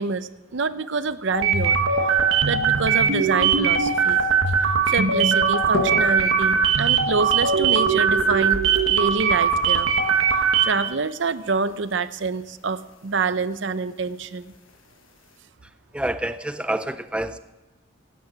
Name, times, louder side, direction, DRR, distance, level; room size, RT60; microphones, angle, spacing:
voice 1, 0.0-1.8 2.4-4.2 4.9-8.6 8.9-9.9 10.6-14.5, right 4 dB, 65° right, 14 dB, 0.6 m, -26 dB
sound 1, 1.3-10.9, right 6 dB, 80° right, 1.3 m, -20 dB
sound 2, 5.1-15.4, left 3 dB, 80° left, 1.4 m, -39 dB
voice 2, 15.9-17.4, right 1 dB, 5° right, 12 dB, 0.4 m, -27 dB
16.5 x 9.4 x 5.8 m, 1.1 s
head